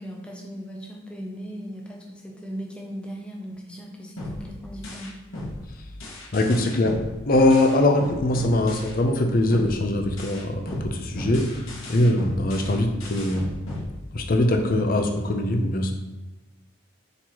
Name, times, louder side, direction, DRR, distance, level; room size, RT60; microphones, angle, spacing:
voice 1, 0.0-5.2 8.6-8.8, equal, 5° left, -1 dB, 0.6 m, -38 dB
sound 1, 4.2-9.2 9.5-14.5, left 1 dB, 75° left, 1.1 m, -36 dB
voice 2, 6.3-7.0 7.3-13.4 14.1-15.9, left 1 dB, 45° left, 4 dB, 0.5 m, -22 dB
4.3 x 3.9 x 3.0 m, 1.1 s
head